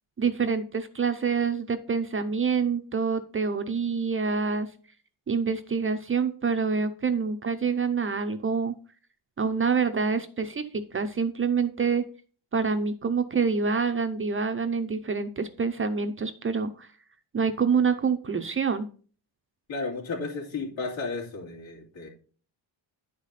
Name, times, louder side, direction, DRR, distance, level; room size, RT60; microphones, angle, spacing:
voice 1, 0.2-4.7 5.3-8.7 9.4-12.0 12.5-16.9 17.3-18.9, right 5 dB, 30° right, 9 dB, 0.5 m, -26 dB
voice 2, 19.7-22.1, left 3 dB, 75° left, -1 dB, 2.9 m, -33 dB
10.5 x 5.0 x 4.0 m, 0.40 s
cardioid pair, 145°, 47 cm